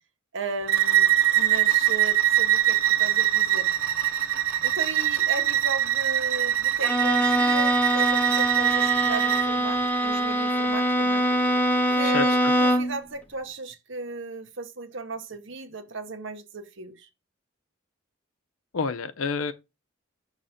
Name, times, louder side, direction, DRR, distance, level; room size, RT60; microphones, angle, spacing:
voice 1, 0.3-3.7 4.6-11.3 11.9-17.1, right 3 dB, 60° right, 1.0 m, -36 dB
Bowed string instrument, 0.7-9.5, right 12 dB, 85° right, 0.6 m, -23 dB
Bowed string instrument 2, 6.8-13.0, right 1 dB, 10° left, 0.7 m, -23 dB
voice 2, 12.0-12.5 18.7-19.5, left 5 dB, 85° left, 0.6 m, -29 dB
6.4 x 3.1 x 5.6 m
head